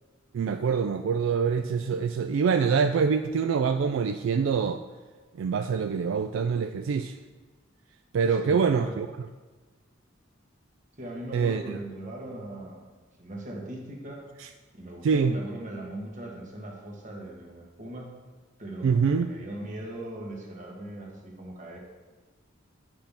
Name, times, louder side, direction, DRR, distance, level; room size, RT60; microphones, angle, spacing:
voice 1, 0.3-4.8 5.3-7.1 8.1-9.1 11.3-11.8 14.4-14.5 15.0-15.4 18.8-19.3, right 6 dB, 75° right, 8 dB, 0.3 m, -25 dB
voice 2, 8.4-9.0 11.0-12.9 13.2-14.3 14.7-18.2 18.6-21.8, right 1 dB, 40° right, 0 dB, 1.3 m, -39 dB
8.8 x 5.6 x 3.5 m, 1.3 s
head